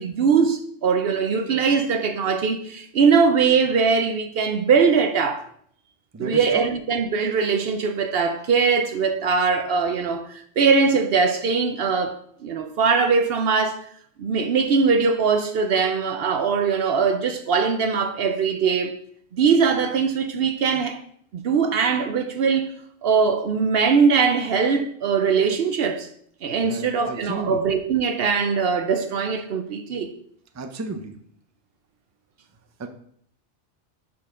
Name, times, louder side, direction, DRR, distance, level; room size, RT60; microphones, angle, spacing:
voice 1, 0.0-5.4 6.2-13.8 14.2-19.0 19.3-21.0 21.3-22.7 23.0-26.1 26.4-30.1, right 5 dB, 65° right, 0.7 m, -21 dB
voice 2, 6.1-6.6 26.7-27.6 30.6-31.1 32.8-32.9, right 3 dB, 25° right, 0.3 m, -32 dB
6.6 x 5.6 x 3.6 m
omnidirectional pair, 1.2 m